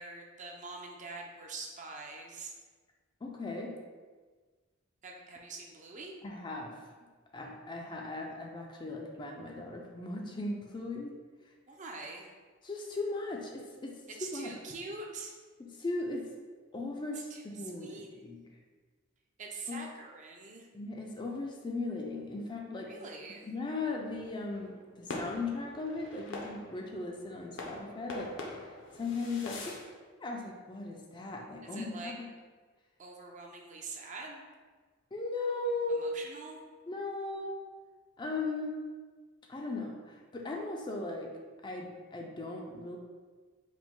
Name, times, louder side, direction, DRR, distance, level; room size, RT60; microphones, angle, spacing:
voice 1, 0.0-2.5 5.0-6.1 11.7-12.3 14.1-15.3 17.3-18.1 19.4-20.7 22.9-23.5 31.6-32.1 33.0-34.4 35.9-36.6, right 3 dB, 35° right, 1 dB, 0.5 m, -44 dB
voice 2, 3.2-3.7 6.2-6.8 7.3-11.2 12.6-14.5 15.6-16.3 16.7-18.4 19.7-19.8 20.7-23.1 23.4-28.6 28.9-29.8 30.2-32.3 35.1-36.1 36.9-37.5 38.2-38.8 39.5-41.3 41.6-43.0, left 3 dB, 20° left, 0 dB, 0.4 m, -37 dB
sound 1, 23.7-29.9, left 2 dB, 60° left, 0.6 m, -44 dB
4.8 x 2.1 x 3.7 m, 1.4 s
head